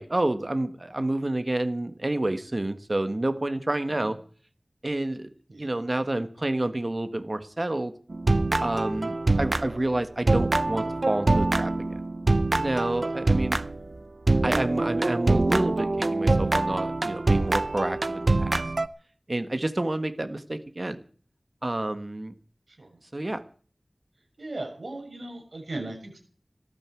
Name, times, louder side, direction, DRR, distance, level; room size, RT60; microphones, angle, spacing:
voice 1, 0.0-4.2 4.8-5.3 5.6-7.9 8.6-11.7 12.6-13.7 14.4-18.6 19.3-21.0 21.6-22.3 23.1-23.4, right 1 dB, 45° right, 10 dB, 1.7 m, -29 dB
sound 1, 8.1-10.0 10.3-13.9 14.3-18.9, right 2 dB, 65° right, 0.7 m, -24 dB
voice 2, 24.4-26.2, right 2 dB, 85° right, 2 dB, 7.0 m, -38 dB
19.0 x 13.5 x 4.9 m, 0.44 s
wide cardioid pair, 60°, 0 cm